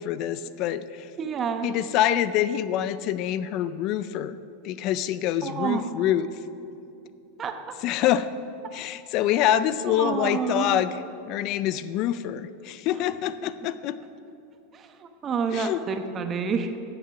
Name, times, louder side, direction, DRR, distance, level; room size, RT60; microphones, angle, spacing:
voice 1, 0.0-1.1 1.6-4.4 4.6-6.3 7.8-8.3 8.7-10.9 11.3-14.0 15.5-15.8, left 11 dB, 50° left, 14 dB, 0.4 m, -26 dB
voice 2, 1.2-1.7 5.4-5.8 7.4-7.5 9.9-10.8 12.9-13.0 14.7-16.7, right 6 dB, 30° right, 7 dB, 1.0 m, -28 dB
14.0 x 7.4 x 5.9 m, 2.8 s
hypercardioid pair, 115°, 0 cm